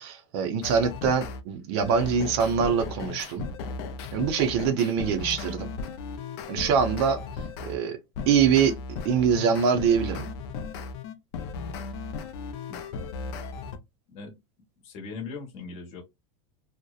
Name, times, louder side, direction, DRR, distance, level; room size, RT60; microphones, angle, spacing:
voice 1, 0.0-3.5 4.1-5.7 6.5-7.2 7.7-8.0 8.3-10.3, right 7 dB, 50° right, 0.5 m, -24 dB
sound 1, 0.6-1.4 1.8-7.8 8.1-13.8, left 4 dB, 50° left, 0.4 m, -36 dB
voice 2, 12.7-13.4 14.1-14.4 14.8-16.0, left 4 dB, 35° left, 0.9 m, -40 dB
2.6 x 2.0 x 2.3 m
supercardioid pair, 160°, 17 cm